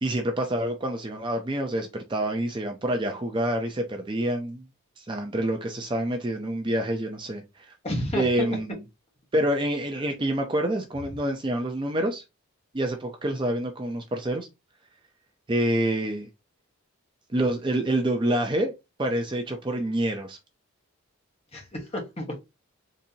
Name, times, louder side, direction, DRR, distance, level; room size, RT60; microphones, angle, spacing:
voice 1, 0.0-4.7 5.0-7.7 8.1-8.8 9.3-12.2 12.7-14.5 15.5-16.3 17.3-18.7 19.0-20.4, right 1 dB, 20° right, 0.4 m, -27 dB
voice 2, 7.8-8.6 21.5-22.4, left 1 dB, 25° left, 0.9 m, -31 dB
4.0 x 2.6 x 2.7 m
head